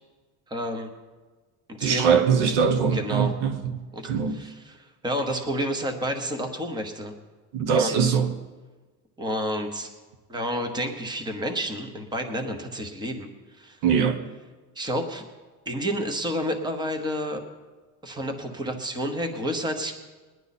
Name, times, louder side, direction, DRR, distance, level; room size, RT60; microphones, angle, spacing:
voice 1, 0.5-0.9 1.8-2.2 2.9-3.3 3.9-7.1 7.7-8.0 9.2-9.9 10.3-13.8 14.7-15.3 15.7-17.4 18.0-19.9, equal, 10° right, 1.0 m, -30 dB
voice 2, 1.8-3.8 4.0-4.4 7.5-8.3 13.8-14.2, right 6 dB, 75° right, 1.2 m, -22 dB
20.5 x 10.5 x 4.2 m
cardioid pair, 160°, 40 cm